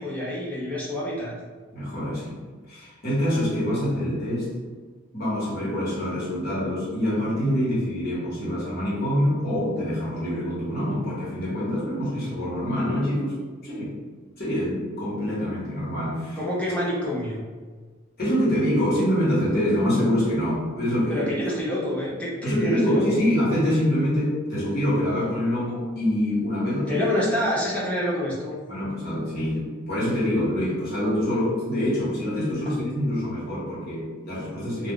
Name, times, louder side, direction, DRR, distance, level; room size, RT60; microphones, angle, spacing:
voice 1, 0.0-1.3 16.3-17.4 21.1-23.2 26.9-28.6, left 1 dB, 5° left, -6 dB, 0.6 m, -27 dB
voice 2, 1.7-2.3 2.7-4.5 5.1-13.3 13.6-13.9 14.4-16.4 18.2-21.3 22.4-27.0 28.7-34.9, equal, 50° left, -8 dB, 1.2 m, -25 dB
2.4 x 2.2 x 3.6 m, 1.5 s
head